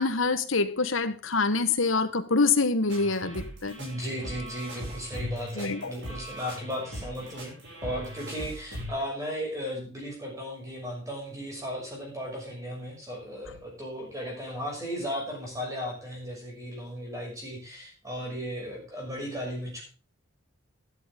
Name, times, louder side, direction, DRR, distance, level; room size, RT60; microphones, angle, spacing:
voice 1, 0.0-3.7 5.5-5.9, left 4 dB, 65° left, 10 dB, 1.3 m, -25 dB
sound 1, 2.9-8.9, equal, 55° right, 6.1 m, -39 dB
voice 2, 3.8-7.5 7.8-19.8, equal, 15° right, -1 dB, 6.2 m, -36 dB
12.5 x 11.5 x 3.6 m, 0.35 s
head